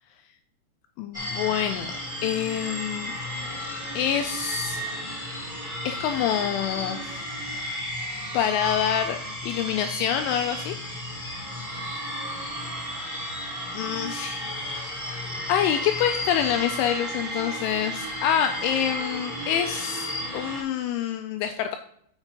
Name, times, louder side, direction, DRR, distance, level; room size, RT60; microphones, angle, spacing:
voice 1, 1.0-1.9 2.2-3.1 4.0-5.0 5.9-7.2 8.3-9.2 9.4-10.8 13.7-14.4 14.7-14.9 15.5-21.8, left 9 dB, 85° left, 6 dB, 2.7 m, -26 dB
sound 1, 1.1-20.6, equal, 50° left, 0.5 m, -33 dB
6.7 x 6.6 x 4.4 m, 0.67 s
omnidirectional pair, 6.0 m